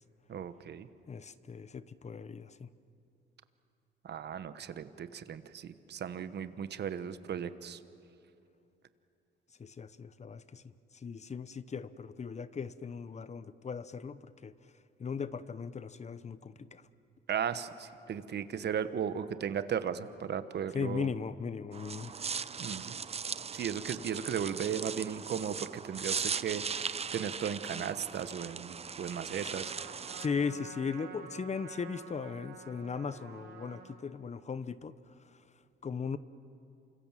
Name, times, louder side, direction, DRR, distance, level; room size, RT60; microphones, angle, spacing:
voice 1, 0.3-0.9 4.0-7.8 17.3-21.1 22.6-23.0 23.5-29.7, right 8 dB, 60° right, 12 dB, 1.2 m, -36 dB
voice 2, 1.1-2.7 9.6-10.6 11.0-14.5 15.0-16.8 20.7-22.1 30.2-34.9 35.8-36.2, left 6 dB, 35° left, 15 dB, 0.9 m, -38 dB
sound 1, 21.7-30.3, right 6 dB, 30° right, 0.7 m, -38 dB
Trumpet, 29.4-34.0, right 6 dB, 75° right, 3.4 m, -49 dB
28.0 x 25.0 x 7.5 m, 2.7 s
cardioid pair, 90°, 20 cm